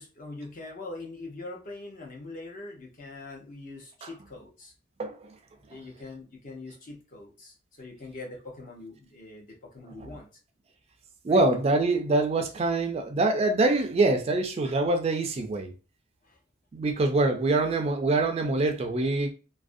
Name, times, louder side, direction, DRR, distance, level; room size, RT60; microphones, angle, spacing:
voice 1, 0.0-4.7 5.7-10.3 11.3-11.5 16.2-16.4 16.8-17.1, left 2 dB, 45° left, 0.7 m, -43 dB
voice 2, 5.0-5.3 10.0-10.1 11.2-15.7 16.7-19.3, right 2 dB, 30° right, 0.3 m, -25 dB
2.4 x 2.0 x 2.5 m
head